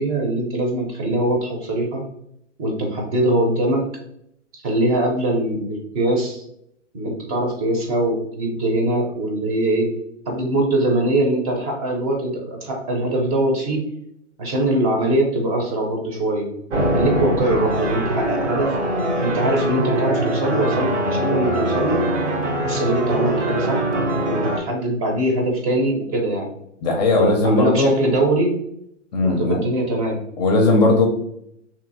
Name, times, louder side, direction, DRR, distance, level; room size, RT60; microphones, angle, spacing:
voice 1, 0.0-2.1 2.6-3.8 4.5-6.4 6.9-9.9 10.3-13.8 14.4-16.5 16.9-18.8 19.2-22.1 22.6-23.9 24.3-26.5 27.2-28.5 29.2-30.2, right 1 dB, 30° right, 1 dB, 0.6 m, -22 dB
sound 1, 16.7-24.6, right 1 dB, 70° right, 0.8 m, -22 dB
voice 2, 26.8-27.9 29.1-29.6 30.4-31.0, left 2 dB, 35° left, 2 dB, 0.5 m, -17 dB
2.7 x 2.5 x 2.5 m, 0.74 s
hypercardioid pair, 130°, 37 cm